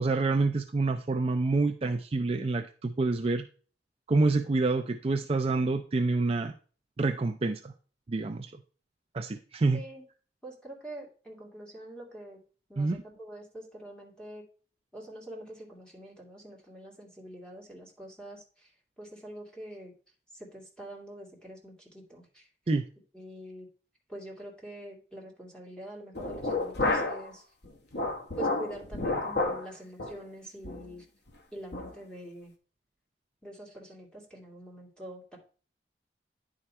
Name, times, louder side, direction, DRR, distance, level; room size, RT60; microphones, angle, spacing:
voice 1, 0.0-3.4 4.1-6.5 7.0-7.7 8.1-8.5 9.1-9.8 12.8-13.0 22.7-22.8, right 3 dB, 35° right, 6 dB, 0.4 m, -27 dB
voice 2, 9.7-10.0 10.4-12.4 12.7-14.4 14.9-18.7 19.0-19.9 20.3-22.4 23.1-23.7 24.1-27.4 28.4-31.0 31.5-32.5 33.4-35.4, right 1 dB, 5° left, -2 dB, 2.5 m, -45 dB
sound 1, 26.2-27.3 27.6-29.7 30.0-30.2 30.6-30.9 31.3-31.4 31.7-31.9, left 2 dB, 75° left, 1.4 m, -30 dB
9.8 x 4.9 x 4.2 m, 0.39 s
head